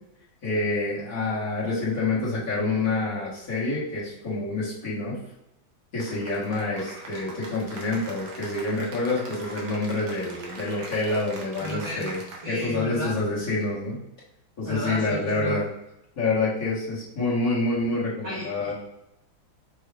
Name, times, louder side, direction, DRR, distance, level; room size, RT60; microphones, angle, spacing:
voice 1, 0.4-5.2 5.9-12.2 12.5-14.0 14.6-15.6 16.2-18.7, left 2 dB, 50° left, -9 dB, 1.7 m, -27 dB
Cheering / Applause, 6.0-12.7, right 2 dB, 55° right, 1.2 m, -41 dB
voice 2, 11.6-12.1 12.4-13.2 14.6-15.6 18.2-18.7, left 1 dB, 40° right, -6 dB, 1.5 m, -33 dB
5.7 x 2.3 x 3.4 m, 0.89 s
omnidirectional pair, 2.1 m